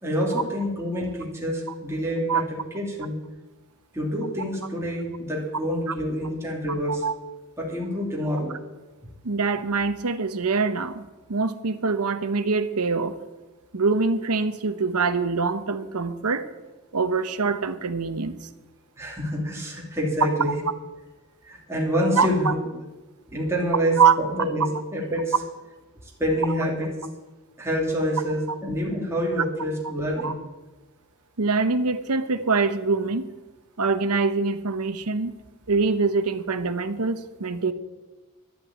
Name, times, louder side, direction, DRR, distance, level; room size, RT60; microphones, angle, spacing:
voice 1, 0.0-3.2 3.9-7.0 7.6-8.6 19.0-20.5 21.4-22.6 23.3-25.3 26.2-26.9 27.6-30.4, equal, 10° right, -3 dB, 2.8 m, -27 dB
voice 2, 9.2-13.2 13.7-16.5 16.9-18.3 22.2-22.5 24.0-24.2 30.2-30.3 31.4-33.3 33.8-35.3 35.7-37.7, right 4 dB, 75° right, 11 dB, 0.9 m, -24 dB
11.5 x 8.2 x 8.7 m, 1.2 s
head